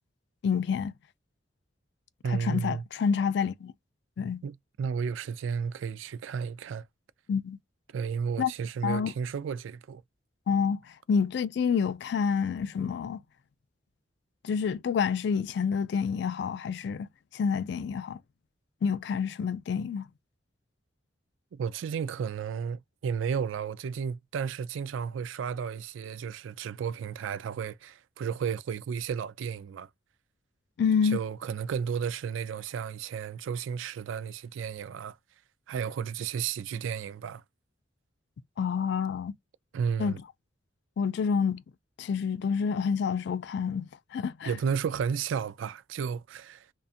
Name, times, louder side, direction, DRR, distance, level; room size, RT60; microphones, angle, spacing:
voice 1, 0.4-0.9 2.2-3.7 4.2-4.4 7.3-7.6 8.4-8.5 8.8-9.1 10.5-10.8 11.1-13.2 14.4-18.2 18.8-20.1 30.8-31.2 38.6-39.3 40.0-40.1 41.0-41.6 42.0-44.5, left 6 dB, 60° left, 0.3 m, -28 dB
voice 2, 2.2-2.8 4.4-6.8 7.9-10.0 21.5-29.9 31.0-35.2 35.7-37.4 39.7-40.2 44.4-46.7, right 6 dB, 85° right, 0.3 m, -33 dB
2.6 x 2.2 x 2.4 m
head